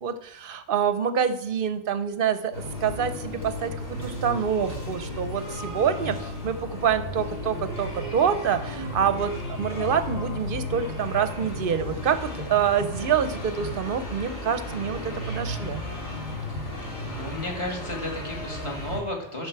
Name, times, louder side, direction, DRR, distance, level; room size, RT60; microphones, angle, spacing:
voice 1, 0.0-15.8, right 7 dB, 50° right, 11 dB, 0.8 m, -26 dB
sound 1, 2.5-19.0, left 1 dB, 70° left, 4.1 m, -34 dB
voice 2, 17.0-19.5, left 1 dB, 25° left, -1 dB, 2.0 m, -33 dB
13.0 x 5.4 x 4.7 m, 0.72 s
omnidirectional pair, 1.2 m